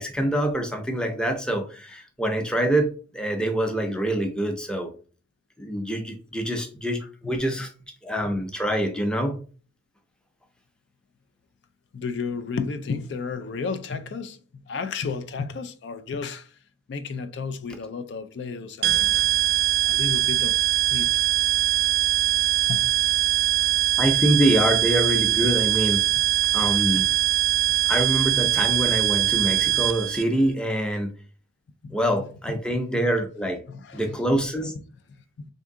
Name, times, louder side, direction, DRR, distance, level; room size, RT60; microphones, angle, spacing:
voice 1, 0.0-2.9 3.1-4.9 5.6-7.7 8.0-9.4 24.0-26.0 26.5-27.1 27.9-31.1 31.9-33.6 33.9-34.7, right 1 dB, 5° left, 0.5 m, -25 dB
voice 2, 11.9-14.4 14.7-16.6 16.9-19.1 19.8-20.6 20.9-21.1 22.7-22.9 31.8-32.0 32.5-32.6 33.7-34.2 35.4-35.5, left 5 dB, 75° left, 0.4 m, -32 dB
sound 1, 18.8-30.2, right 14 dB, 60° right, 0.4 m, -22 dB
3.6 x 2.6 x 3.6 m
head